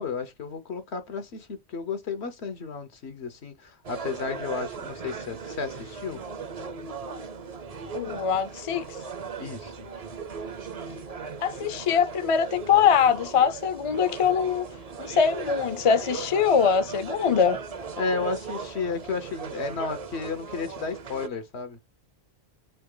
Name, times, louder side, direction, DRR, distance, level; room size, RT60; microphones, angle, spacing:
voice 1, 0.0-6.2 9.4-9.9 18.0-21.8, left 4 dB, 80° left, 1.3 m, -33 dB
sound 1, 3.8-21.3, right 5 dB, 40° right, 0.6 m, -38 dB
voice 2, 7.9-8.9 11.4-14.7 15.0-17.6, left 7 dB, 40° left, 0.5 m, -23 dB
4.3 x 2.8 x 3.8 m
omnidirectional pair, 1.1 m